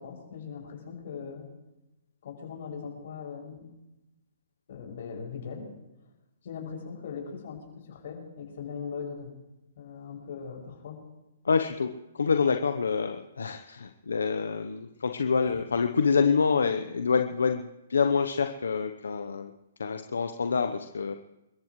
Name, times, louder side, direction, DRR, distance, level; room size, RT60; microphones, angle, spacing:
voice 1, 0.0-1.5 2.2-3.7 4.7-5.7 6.4-9.3 9.8-11.0, left 6 dB, 60° left, 0 dB, 6.5 m, -40 dB
voice 2, 11.4-19.5 19.8-21.2, left 5 dB, 85° left, 6 dB, 0.9 m, -27 dB
28.5 x 15.0 x 3.2 m, 0.98 s
hypercardioid pair, 140°, 0 cm